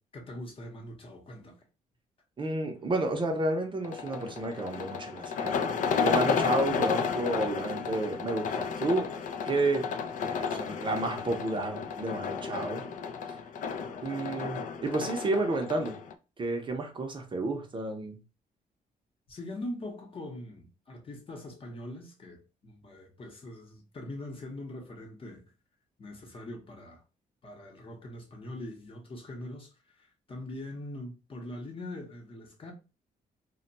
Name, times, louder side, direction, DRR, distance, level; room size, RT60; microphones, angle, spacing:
voice 1, 0.1-1.6 19.3-25.4 26.0-27.0 27.4-32.7, left 1 dB, 35° left, 0.8 m, -42 dB
voice 2, 2.4-5.7 6.0-9.1 9.5-9.9 10.4-12.8 14.0-16.0 16.4-18.2, right 2 dB, 30° right, 0.6 m, -31 dB
sound 1, 3.8-16.1, left 6 dB, 60° left, 0.4 m, -32 dB
2.2 x 2.2 x 3.9 m
cardioid pair, 125°, 15 cm